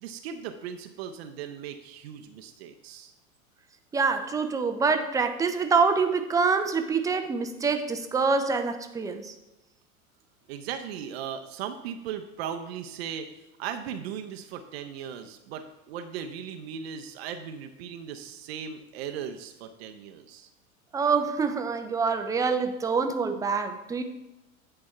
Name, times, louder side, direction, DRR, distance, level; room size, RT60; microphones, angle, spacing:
voice 1, 0.0-3.1 10.5-20.5, right 8 dB, 45° right, 7 dB, 0.7 m, -38 dB
voice 2, 3.9-9.3 20.9-24.0, right 5 dB, 10° right, 7 dB, 0.5 m, -26 dB
8.8 x 4.7 x 5.5 m, 1.0 s
figure-of-eight pair, 90°, 42 cm